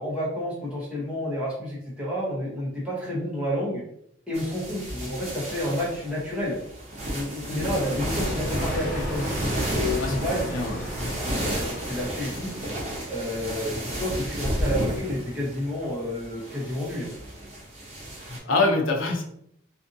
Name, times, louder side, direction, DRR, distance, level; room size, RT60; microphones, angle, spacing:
voice 1, 0.0-3.8 4.3-6.6 7.1-10.5 11.2-12.5 13.1-17.1, left 1 dB, 5° right, -7 dB, 0.9 m, -30 dB
sound 1, 4.3-18.4, right 1 dB, 35° right, 0.8 m, -32 dB
voice 2, 7.5-8.0 10.0-11.2 18.3-19.2, left 2 dB, 70° left, 1 dB, 0.6 m, -27 dB
Thunder, 8.0-13.4, equal, 45° left, 0.9 m, -35 dB
2.5 x 2.5 x 2.5 m, 0.72 s
head